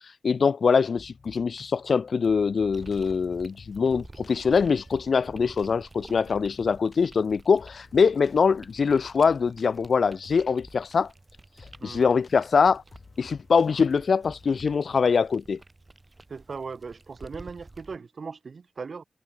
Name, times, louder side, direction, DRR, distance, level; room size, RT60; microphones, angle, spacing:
voice 1, 0.2-11.1 11.8-12.8 13.2-15.6, left 5 dB, 70° left, 0.4 m, -23 dB
sound 1, 1.0-14.8, left 4 dB, 55° left, 5.3 m, -53 dB
sound 2, 2.7-18.0, right 2 dB, 30° right, 3.5 m, -50 dB
voice 2, 16.3-19.0, right 5 dB, 60° right, 2.2 m, -38 dB
wide cardioid pair, 85°, 0 cm